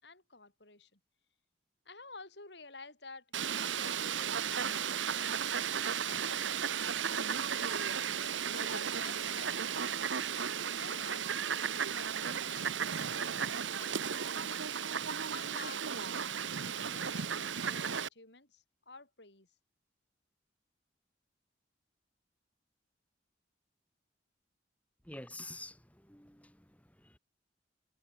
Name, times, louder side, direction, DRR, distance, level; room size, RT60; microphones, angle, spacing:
voice 1, 0.0-1.0 1.9-5.4 6.0-6.7 7.4-8.0 8.4-10.1 10.7-11.3 11.9-13.5 13.8-14.8 15.3-16.3 16.6-19.5, left 3 dB, 65° left, 7.2 m, -52 dB
Fowl, 3.3-18.1, right 7 dB, 90° right, 1.1 m, -35 dB
voice 2, 25.1-26.6 27.0-27.2, left 2 dB, 10° left, 6.5 m, -48 dB
head